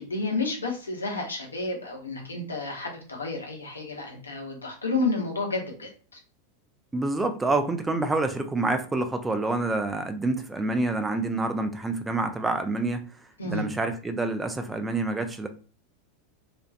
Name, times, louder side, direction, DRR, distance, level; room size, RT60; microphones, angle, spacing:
voice 1, 0.0-6.2 13.4-13.7, left 3 dB, 80° left, 1 dB, 0.7 m, -31 dB
voice 2, 6.9-13.0 13.4-15.5, right 2 dB, 10° right, 8 dB, 0.3 m, -27 dB
2.4 x 2.2 x 2.3 m, 0.39 s
figure-of-eight pair, 85°, 0 cm